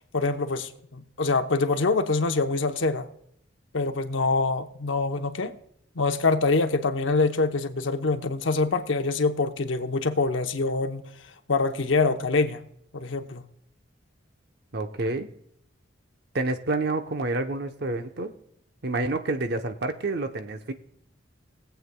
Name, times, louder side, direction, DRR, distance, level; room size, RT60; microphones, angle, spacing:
voice 1, 0.1-3.1 3.7-5.5 6.0-11.0 11.5-12.6 12.9-13.4, left 3 dB, 80° left, 7 dB, 0.8 m, -25 dB
voice 2, 14.7-15.3 16.3-18.3 18.8-20.7, right 2 dB, 55° right, 7 dB, 0.8 m, -28 dB
20.5 x 8.0 x 2.2 m, 0.73 s
head